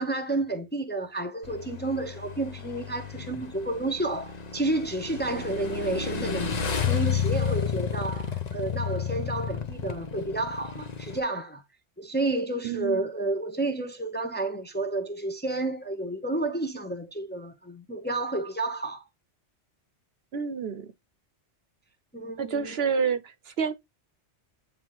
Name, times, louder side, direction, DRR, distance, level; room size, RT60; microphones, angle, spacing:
voice 1, 0.0-11.6 12.0-19.0 22.1-22.8, right 2 dB, 10° left, 0.7 m, -31 dB
Motorcycle / Engine, 1.4-11.2, left 7 dB, 40° left, 0.9 m, -31 dB
voice 2, 12.6-13.1 20.3-20.9 22.4-23.7, right 6 dB, 60° right, 0.9 m, -29 dB
8.9 x 3.7 x 2.9 m
omnidirectional pair, 1.2 m